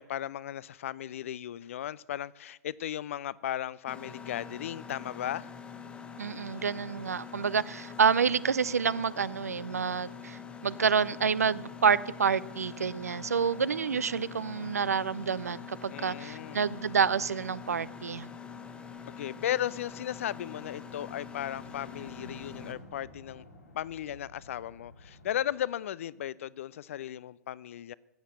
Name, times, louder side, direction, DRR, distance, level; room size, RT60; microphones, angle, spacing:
voice 1, 0.0-5.5 15.9-16.6 19.2-23.4 23.7-27.9, left 11 dB, 60° left, 0.4 m, -36 dB
Mechanisms, 3.9-22.7, left 6 dB, 15° left, 1.2 m, -45 dB
voice 2, 6.2-18.3, right 6 dB, 75° right, 0.5 m, -28 dB
sound 1, 16.0-25.4, left 1 dB, 80° left, 4.3 m, -54 dB
13.5 x 8.2 x 7.8 m
figure-of-eight pair, 105°, 8 cm